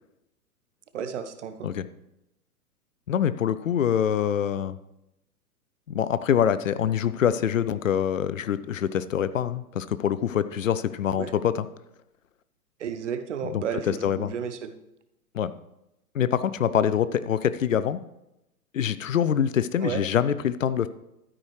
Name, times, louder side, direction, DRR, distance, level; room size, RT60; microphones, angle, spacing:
voice 1, 0.9-1.7 11.2-11.3 12.8-14.7 19.8-20.0, right 7 dB, 50° right, 9 dB, 1.0 m, -32 dB
voice 2, 3.1-4.8 5.9-11.7 13.4-14.3 15.3-15.5 16.1-18.0 18.7-20.9, left 9 dB, 60° left, 14 dB, 0.6 m, -25 dB
12.5 x 9.5 x 3.1 m, 0.87 s
figure-of-eight pair, 110°, 45 cm